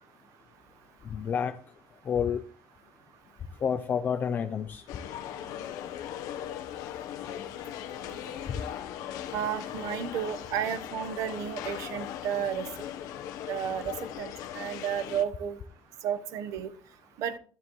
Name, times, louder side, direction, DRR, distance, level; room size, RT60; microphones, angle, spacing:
voice 1, 1.0-1.6 2.1-2.4 3.6-4.8, left 7 dB, 30° left, 8 dB, 0.5 m, -29 dB
sound 1, 4.9-15.2, left 10 dB, 70° left, 1.1 m, -39 dB
voice 2, 9.3-12.7 13.5-15.6 16.0-16.7 17.2-17.3, right 9 dB, 60° right, 11 dB, 1.1 m, -32 dB
12.0 x 9.9 x 3.2 m, 0.42 s
cardioid pair, 170°, 6 cm